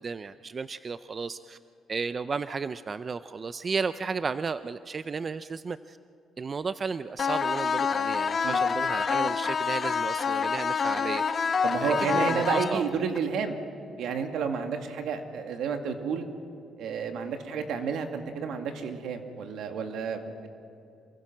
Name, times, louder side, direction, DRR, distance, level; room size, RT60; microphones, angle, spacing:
voice 1, 0.0-1.6 1.9-6.0 6.4-11.2 11.8-12.8, right 5 dB, 40° right, 12 dB, 0.5 m, -33 dB
sound 1, 7.2-13.2, left 6 dB, 45° left, 1.0 m, -27 dB
voice 2, 11.6-13.6 14.0-16.3 16.8-20.5, right 6 dB, 80° right, 5 dB, 2.2 m, -31 dB
27.0 x 23.5 x 6.1 m, 2.6 s
cardioid pair, 90°, 0 cm